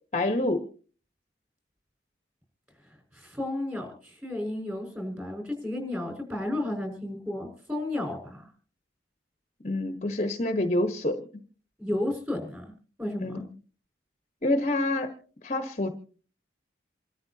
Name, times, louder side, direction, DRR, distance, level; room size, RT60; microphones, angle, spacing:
voice 1, 0.1-0.6 9.6-11.2 13.2-13.4 14.4-15.1 15.4-15.9, left 1 dB, 35° left, 7 dB, 1.2 m, -27 dB
voice 2, 3.1-8.4 11.8-12.6 13.0-13.4, left 1 dB, 10° right, 3 dB, 5.7 m, -32 dB
28.0 x 13.0 x 2.8 m, 0.39 s
head